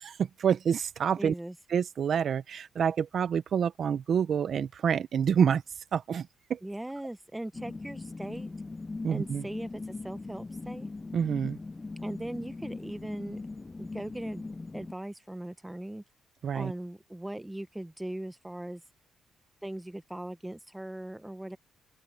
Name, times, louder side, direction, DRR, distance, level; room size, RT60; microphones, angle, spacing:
voice 1, 0.0-1.3 1.7-6.6 9.0-9.4 11.1-11.6 16.4-16.7, right 7 dB, 55° right, 0.6 m, -28 dB
voice 2, 1.2-1.5 6.6-8.5 9.1-10.9 12.0-13.4 13.8-14.5 14.7-16.0 16.5-18.8 19.6-21.6, right 1 dB, 10° right, 0.9 m, -39 dB
sound 1, 7.5-14.9, left 3 dB, 20° left, 0.3 m, -40 dB
open air
cardioid pair, 90°, 0 cm